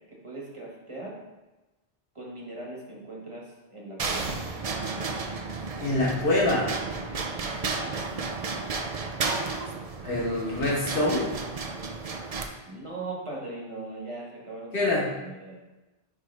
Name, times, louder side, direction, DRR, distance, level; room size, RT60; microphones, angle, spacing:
voice 1, 0.1-1.2 2.1-4.3 7.5-8.0 12.6-14.8 15.2-15.6, right 2 dB, 30° right, -3 dB, 1.4 m, -39 dB
sound 1, 4.0-12.5, right 4 dB, 45° right, 0.5 m, -32 dB
voice 2, 5.8-6.7 10.0-11.3 14.7-15.0, left 2 dB, 55° left, -4 dB, 1.6 m, -25 dB
9.4 x 3.4 x 3.3 m, 1.1 s
omnidirectional pair, 1.1 m